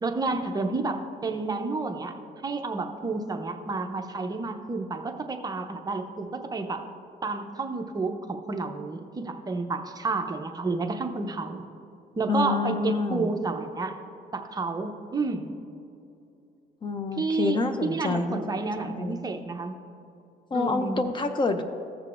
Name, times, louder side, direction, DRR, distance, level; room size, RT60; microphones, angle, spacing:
voice 1, 0.0-2.2 2.4-6.8 7.2-11.6 12.2-14.0 14.3-15.5 17.2-19.8 20.5-21.0, right 3 dB, 20° right, 5 dB, 0.7 m, -30 dB
voice 2, 12.3-13.3 16.8-19.2 20.5-21.6, left 3 dB, 30° left, 8 dB, 0.5 m, -28 dB
15.5 x 6.5 x 2.5 m, 2.7 s
cardioid pair, 110°, 17 cm